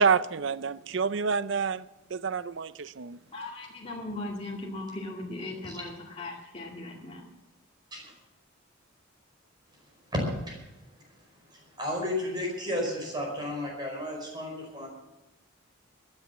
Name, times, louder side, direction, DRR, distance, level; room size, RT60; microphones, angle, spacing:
voice 1, 0.0-1.8 2.1-3.2, right 5 dB, 60° right, 0.5 m, -27 dB
voice 2, 3.3-7.2, left 2 dB, 30° left, 2.2 m, -38 dB
voice 3, 11.5-14.9, left 1 dB, 20° right, 4.9 m, -33 dB
14.5 x 10.5 x 7.4 m
head